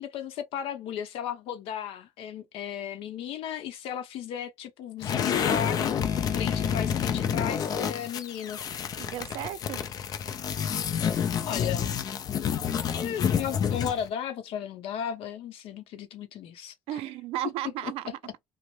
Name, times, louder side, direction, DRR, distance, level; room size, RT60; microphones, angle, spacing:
voice 1, 0.0-6.0 6.4-8.6 11.5-12.0 13.0-17.0 17.8-17.9 18.2-18.4, left 9 dB, 70° left, 0.7 m, -35 dB
sound 1, 5.0-14.1, left 8 dB, 40° left, 0.4 m, -29 dB
voice 2, 9.0-9.8 16.9-18.1, right 13 dB, 75° right, 0.4 m, -34 dB
3.0 x 2.0 x 3.0 m
cardioid pair, 145°, 10 cm